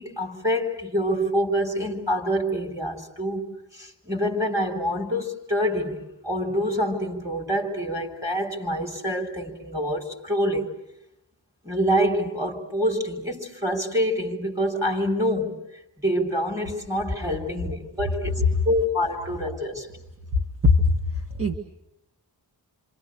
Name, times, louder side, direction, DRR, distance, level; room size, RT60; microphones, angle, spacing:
voice 1, 0.0-3.5 3.7-10.7 11.6-15.6 16.0-19.9, equal, 10° right, 3.7 m, -26 dB
voice 2, 19.2-19.3 20.6-20.9 21.3-21.6, left 3 dB, 35° right, 1.8 m, -19 dB
28.5 x 27.0 x 6.3 m
wide cardioid pair, 170°, 40 cm